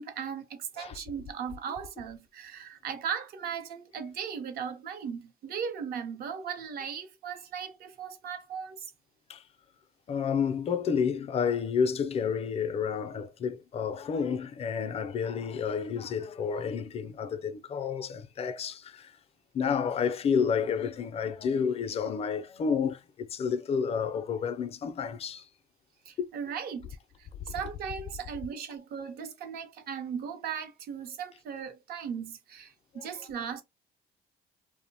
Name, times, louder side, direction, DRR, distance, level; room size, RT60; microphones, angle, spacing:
voice 1, 0.0-8.9 26.1-33.6, right 7 dB, 65° right, 0.7 m, -37 dB
voice 2, 10.1-19.1 19.5-25.4, left 6 dB, 35° left, 0.4 m, -30 dB
2.8 x 2.0 x 2.6 m
cardioid pair, 110°, 17 cm